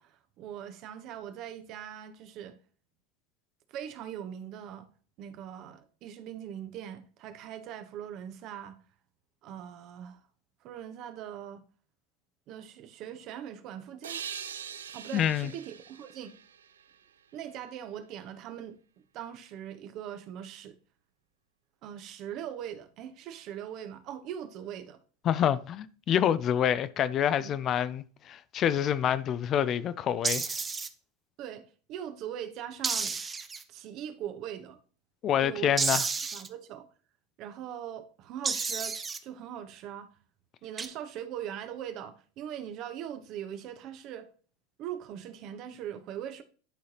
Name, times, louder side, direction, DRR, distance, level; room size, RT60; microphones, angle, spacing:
voice 1, 0.0-2.6 3.7-4.9 5.2-8.8 9.4-10.2 10.6-11.6 12.5-14.3 14.9-16.3 17.3-18.8 19.1-20.8 21.8-25.0 27.4-27.6 31.4-33.2 33.7-34.8 35.4-35.8 36.3-36.9 37.4-40.1 40.6-44.3 44.8-46.4, right 10 dB, 50° right, 0.9 m, -41 dB
sound 1, 14.0-17.5, right 8 dB, 85° right, 0.4 m, -43 dB
voice 2, 15.1-15.5 25.2-30.5 35.2-36.0, left 9 dB, 40° left, 0.4 m, -27 dB
sound 2, 30.2-30.9 32.8-33.6 35.8-36.5 38.4-39.2 40.8-40.9, right 5 dB, 25° right, 0.7 m, -31 dB
11.5 x 3.9 x 2.9 m
hypercardioid pair, 90°, 0 cm